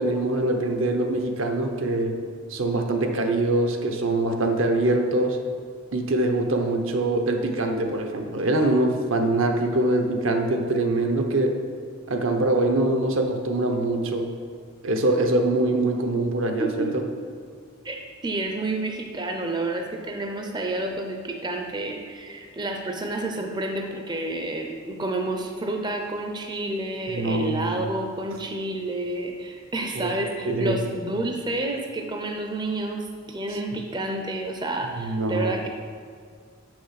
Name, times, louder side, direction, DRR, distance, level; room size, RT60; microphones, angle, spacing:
voice 1, 0.0-2.1 2.5-5.4 5.9-11.5 12.1-14.3 14.8-16.9 27.1-27.8 29.9-30.1 30.4-30.8 34.9-35.6, right 2 dB, 70° right, 4 dB, 0.8 m, -23 dB
voice 2, 16.6-16.9 17.8-35.7, right 2 dB, 20° right, 3 dB, 0.5 m, -30 dB
6.6 x 6.2 x 5.7 m, 2.1 s
head